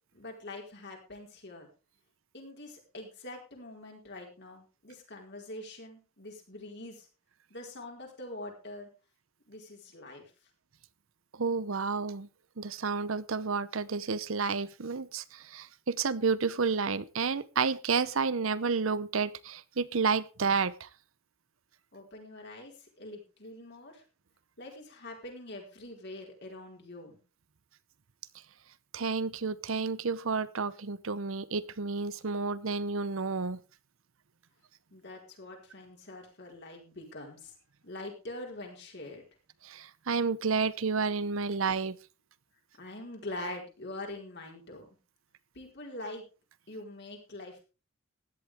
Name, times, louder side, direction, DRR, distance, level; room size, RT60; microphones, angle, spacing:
voice 1, 0.1-1.7 2.3-7.1 7.5-8.9 9.5-10.3 21.9-24.0 24.6-27.2 34.9-37.5 37.8-39.2 42.8-44.9 45.5-46.2 46.7-47.6, left 2 dB, 55° left, 1 dB, 4.7 m, -44 dB
voice 2, 11.3-12.3 12.6-20.9 28.9-33.6 39.6-42.0, right 5 dB, 70° right, 17 dB, 0.8 m, -30 dB
16.0 x 11.0 x 3.5 m, 0.31 s
head